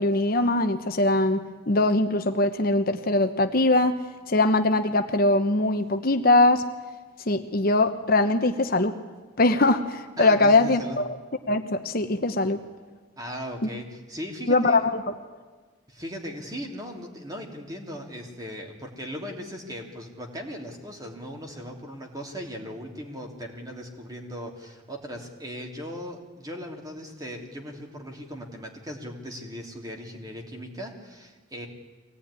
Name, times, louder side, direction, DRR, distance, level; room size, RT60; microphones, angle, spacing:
voice 1, 0.0-4.0 4.3-6.6 7.3-9.0 9.4-11.2 11.5-12.6 14.5-15.1, left 2 dB, 45° left, 7 dB, 1.1 m, -22 dB
voice 2, 10.2-11.0 13.2-14.8 15.9-31.7, equal, 20° right, 2 dB, 3.1 m, -38 dB
24.0 x 18.0 x 10.0 m, 1.4 s
head